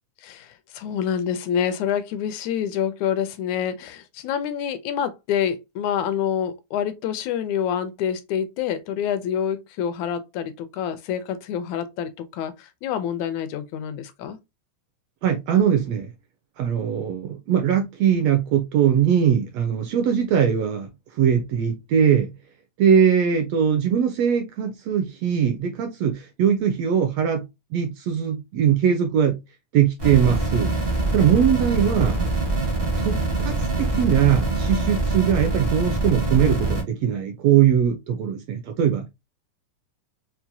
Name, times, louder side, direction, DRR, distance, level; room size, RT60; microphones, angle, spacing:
voice 1, 0.2-14.4, left 8 dB, 80° left, 1.9 m, -27 dB
voice 2, 15.2-16.1 16.6-20.9 21.2-22.3 22.8-27.4 27.7-29.4 29.7-32.3 33.0-39.1, right 8 dB, 80° right, 1.5 m, -21 dB
sound 1, 30.0-36.8, right 2 dB, 55° right, 0.6 m, -24 dB
5.8 x 2.2 x 2.6 m
omnidirectional pair, 3.5 m